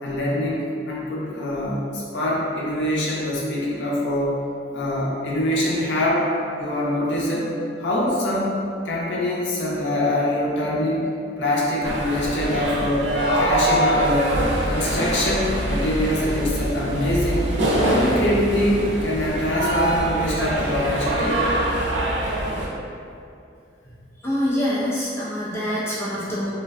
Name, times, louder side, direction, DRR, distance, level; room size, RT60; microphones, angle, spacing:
voice 1, 0.0-4.4 4.7-6.3 6.6-7.5 7.8-8.5 8.8-11.1 11.4-14.3 14.7-17.5 17.7-21.4, left 1 dB, 75° left, -5 dB, 0.5 m, -24 dB
sound 1, 11.8-22.7, right 1 dB, 75° right, 0.4 m, -24 dB
voice 2, 24.2-26.5, equal, 15° left, -8 dB, 0.4 m, -25 dB
2.5 x 2.1 x 2.3 m, 2.5 s
head